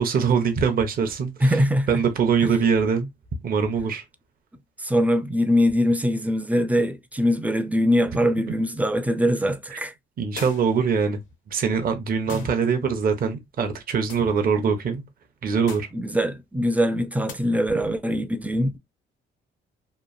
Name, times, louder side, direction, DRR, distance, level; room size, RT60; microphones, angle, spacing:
voice 1, 0.0-1.6 1.9-3.1 3.4-4.0 9.7-9.8 10.2-11.2 11.5-15.0 15.4-15.9, right 6 dB, 45° right, 0.7 m, -23 dB
voice 2, 1.4-1.9 4.8-9.9 12.3-12.5 15.9-18.8, equal, 5° right, 0.4 m, -22 dB
sound 1, 10.4-10.8 12.3-12.6 14.1-14.3 15.7-16.0 17.3-17.4, left 5 dB, 75° left, 0.8 m, -39 dB
2.9 x 2.4 x 2.3 m
cardioid pair, 90°, 20 cm